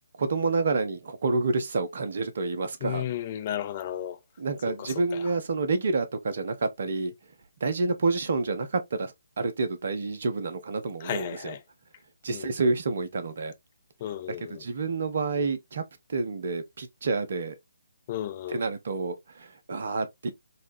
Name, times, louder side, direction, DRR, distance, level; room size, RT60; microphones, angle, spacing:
voice 1, 0.2-3.0 4.4-7.1 7.6-11.6 12.2-13.5 14.5-15.8 16.1-17.6 18.5-20.3, right 3 dB, 50° right, 0.7 m, -28 dB
voice 2, 2.8-4.2 4.7-4.8 11.0-11.6 12.3-12.5 14.0-14.6 18.1-18.6, left 11 dB, 30° left, 0.5 m, -33 dB
4.2 x 2.3 x 2.6 m
figure-of-eight pair, 140°, 0 cm